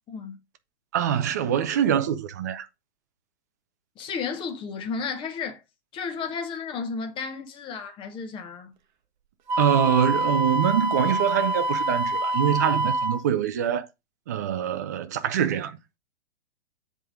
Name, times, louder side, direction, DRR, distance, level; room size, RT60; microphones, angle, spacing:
voice 1, 0.1-0.4 4.0-5.6 5.9-8.7, left 5 dB, 15° left, 1.1 m, -33 dB
voice 2, 0.9-2.7 9.6-13.9 14.3-15.8, right 9 dB, 15° right, 0.4 m, -24 dB
Wind instrument woodwind instrument, 9.5-13.2, right 1 dB, 45° right, 0.9 m, -26 dB
7.6 x 3.8 x 4.8 m
figure-of-eight pair, 115°, 34 cm